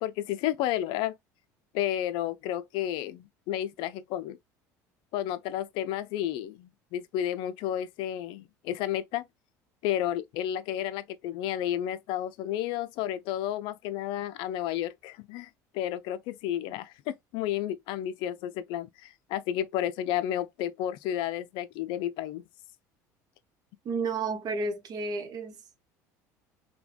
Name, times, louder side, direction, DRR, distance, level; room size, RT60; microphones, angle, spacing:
voice 1, 0.0-1.1 1.7-4.4 5.1-9.2 9.8-15.5 15.7-22.4, left 12 dB, 65° left, 0.4 m, -32 dB
voice 2, 23.8-25.5, right 3 dB, 45° right, 0.8 m, -31 dB
3.2 x 2.2 x 2.3 m
hypercardioid pair, 80°, 9 cm